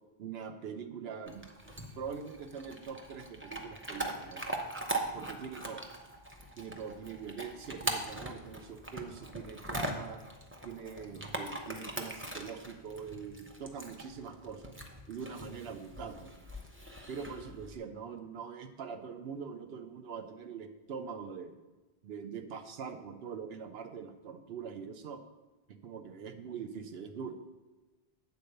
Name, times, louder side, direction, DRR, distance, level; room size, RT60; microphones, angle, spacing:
voice 1, 0.2-1.5 1.9-4.6 5.1-5.9 6.6-10.2 10.6-14.7 15.1-16.5 17.1-21.6 22.0-25.2 25.7-27.3, right 6 dB, 70° right, 7 dB, 1.0 m, -43 dB
Chewing mastication / Dog, 1.3-17.8, right 1 dB, 15° right, 0.6 m, -41 dB
8.4 x 4.1 x 6.6 m, 1.2 s
omnidirectional pair, 1.1 m